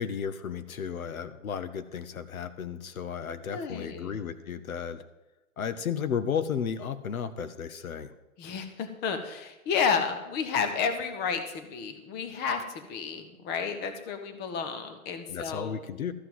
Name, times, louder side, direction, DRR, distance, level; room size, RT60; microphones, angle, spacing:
voice 1, 0.0-5.0 5.6-8.1 15.3-16.1, left 7 dB, 75° left, 12 dB, 0.9 m, -33 dB
voice 2, 3.5-4.2 8.4-15.7, left 6 dB, 25° left, 8 dB, 1.1 m, -31 dB
13.5 x 5.8 x 7.3 m, 1.0 s
hypercardioid pair, 130°, 43 cm